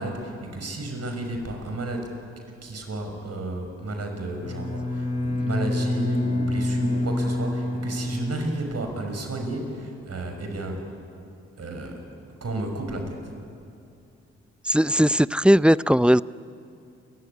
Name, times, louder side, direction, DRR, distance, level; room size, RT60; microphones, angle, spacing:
voice 1, 0.0-2.1 2.6-10.9 11.6-12.0 12.4-13.2, right 2 dB, 55° right, 4 dB, 5.8 m, -32 dB
Bowed string instrument, 4.4-9.1, left 1 dB, 75° left, 7.6 m, -27 dB
voice 2, 14.6-16.2, equal, 5° right, 18 dB, 0.5 m, -18 dB
29.0 x 15.0 x 9.9 m, 2.5 s
hypercardioid pair, 40°, 30 cm